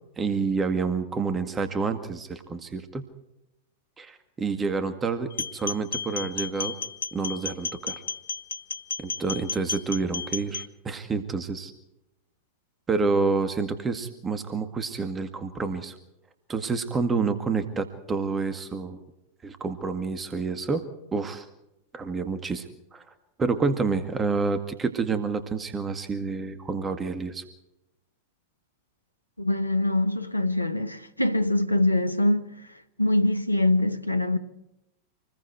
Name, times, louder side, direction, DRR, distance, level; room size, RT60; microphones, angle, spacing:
voice 1, 0.2-3.0 4.0-6.8 7.1-8.0 9.0-11.7 12.9-16.0 16.5-19.0 19.4-20.8 21.1-21.5 21.9-23.0 23.4-27.4, right 4 dB, 15° right, 2.0 m, -28 dB
sound 1, 5.3-10.7, left 5 dB, 70° left, 0.8 m, -33 dB
voice 2, 29.4-32.5 33.0-34.4, left 1 dB, 85° left, 1.4 m, -23 dB
27.0 x 21.0 x 4.7 m
figure-of-eight pair, 90°, 0 cm